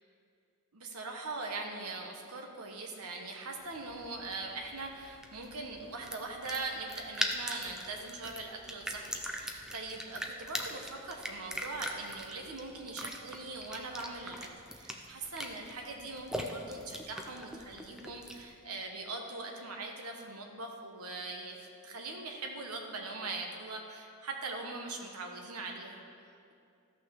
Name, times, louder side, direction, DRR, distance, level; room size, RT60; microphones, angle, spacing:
voice 1, 0.7-26.5, right 3 dB, 85° right, 1 dB, 1.2 m, -41 dB
sound 1, 3.7-18.6, equal, 5° right, 0.6 m, -41 dB
14.0 x 6.3 x 6.4 m, 2.4 s
head